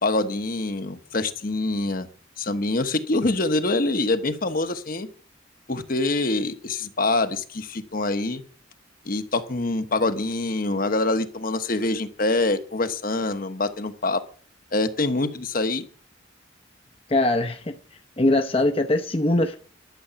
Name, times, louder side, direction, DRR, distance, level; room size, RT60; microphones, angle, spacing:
voice 1, 0.0-2.1 2.4-5.1 5.7-8.4 9.0-14.2 14.7-15.8, left 2 dB, 45° left, 1.2 m, -25 dB
voice 2, 17.1-19.6, left 2 dB, 30° left, 0.8 m, -22 dB
12.0 x 7.8 x 7.0 m
head